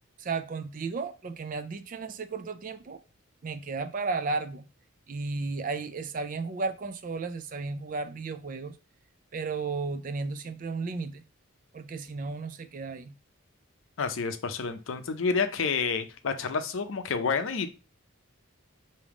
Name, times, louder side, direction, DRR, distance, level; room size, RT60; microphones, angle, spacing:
voice 1, 0.2-3.0 3.4-4.6 5.1-8.8 9.3-11.2 11.7-13.1, right 4 dB, 40° right, 0.4 m, -34 dB
voice 2, 14.0-17.7, left 5 dB, 70° left, 0.5 m, -29 dB
3.5 x 2.7 x 4.7 m
head